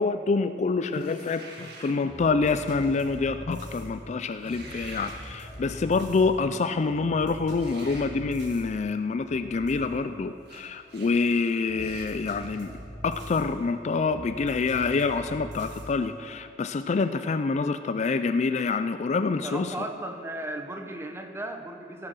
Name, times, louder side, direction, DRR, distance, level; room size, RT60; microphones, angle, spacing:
voice 1, 0.0-12.7 13.0-19.9, left 4 dB, 40° left, 10 dB, 0.4 m, -26 dB
sound 1, 0.9-2.0 4.3-5.2 7.5-8.1 10.5-10.6 10.9-11.1 11.7-12.1, right 3 dB, 65° right, 1.8 m, -45 dB
sound 2, 2.0-16.5, equal, 90° right, 2.8 m, -43 dB
voice 2, 19.3-22.1, right 1 dB, 15° right, 5 dB, 1.0 m, -36 dB
17.5 x 7.6 x 6.2 m, 2.5 s
head